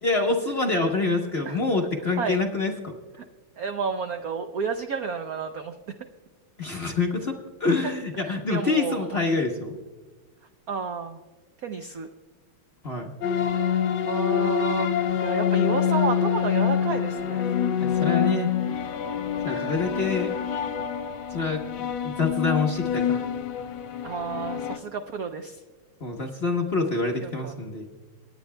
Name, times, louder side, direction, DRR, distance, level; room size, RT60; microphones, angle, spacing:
voice 1, 0.0-2.9 6.6-9.8 12.8-13.1 17.8-18.5 19.4-20.3 21.3-23.2 26.0-27.9, left 3 dB, 45° left, 2 dB, 0.9 m, -26 dB
voice 2, 3.6-5.7 7.8-7.9 8.2-9.2 10.7-11.2 11.6-12.1 14.1-17.4 19.5-19.7 24.0-25.6 27.2-27.5, right 5 dB, 80° right, 7 dB, 0.8 m, -31 dB
sound 1, 13.2-24.8, left 8 dB, 75° left, 1.5 m, -26 dB
28.5 x 9.7 x 2.2 m, 1.3 s
omnidirectional pair, 2.4 m